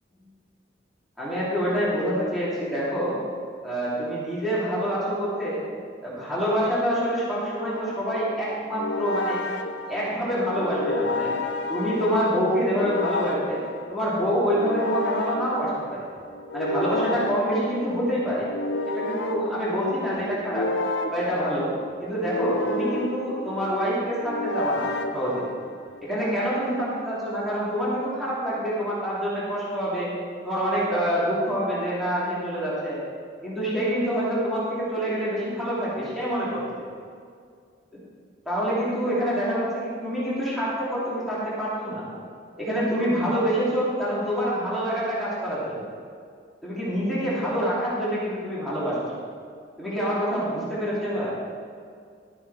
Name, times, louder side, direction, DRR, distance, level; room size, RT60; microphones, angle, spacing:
voice 1, 1.2-3.2 3.6-5.6 6.0-9.4 9.9-11.3 11.7-13.6 13.9-16.1 16.5-18.5 18.8-20.7 21.1-21.7 22.0-25.5 26.0-30.1 30.4-33.0 33.4-36.9 38.4-42.1 42.6-45.8 46.6-49.0 49.8-51.3, equal, ahead, -10 dB, 3.2 m, -26 dB
sound 1, 7.6-26.0, left 2 dB, 80° left, 0.8 m, -31 dB
13.0 x 9.0 x 4.3 m, 2.2 s
head